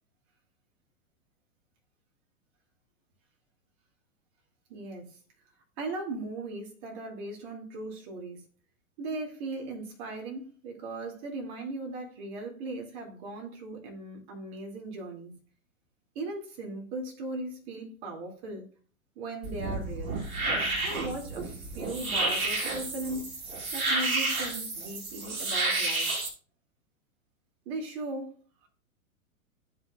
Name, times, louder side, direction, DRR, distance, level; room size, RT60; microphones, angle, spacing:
voice 1, 4.7-5.2 5.8-8.4 9.0-15.4 16.1-18.7 19.2-20.2 20.8-23.4 23.7-26.1 27.7-28.3 28.6-28.7, right 2 dB, 45° right, 2.7 m, -38 dB
sound 1, 19.4-26.3, right 2 dB, 75° right, 2.7 m, -31 dB
11.5 x 5.4 x 2.4 m
hypercardioid pair, 110°, 42 cm